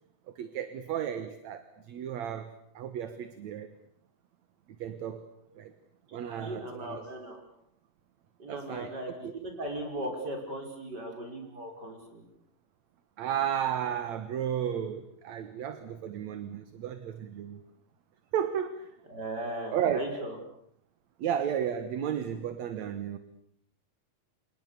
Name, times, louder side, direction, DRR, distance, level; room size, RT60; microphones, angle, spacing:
voice 1, 0.4-3.7 4.8-5.3 5.6-5.7 6.1-7.0 8.5-8.9 9.2-9.3 13.2-17.6 18.3-18.9 19.7-20.0 21.2-23.2, right 9 dB, 60° right, 11 dB, 2.3 m, -33 dB
voice 2, 6.1-7.4 8.4-12.2 19.1-20.4, right 1 dB, 25° right, 3 dB, 6.3 m, -38 dB
30.0 x 26.5 x 6.9 m, 0.70 s
omnidirectional pair, 4.2 m